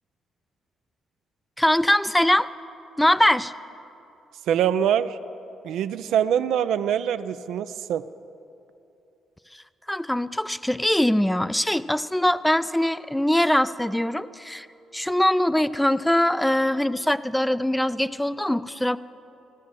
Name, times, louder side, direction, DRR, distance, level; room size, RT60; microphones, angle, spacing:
voice 1, 1.6-2.5 3.0-3.5 9.9-14.7 14.9-19.0, left 1 dB, 5° left, 16 dB, 0.3 m, -22 dB
voice 2, 4.5-5.2 5.6-8.0, right 9 dB, 80° right, 12 dB, 0.3 m, -24 dB
15.5 x 6.2 x 7.4 m, 2.8 s
cardioid pair, 90°, 0 cm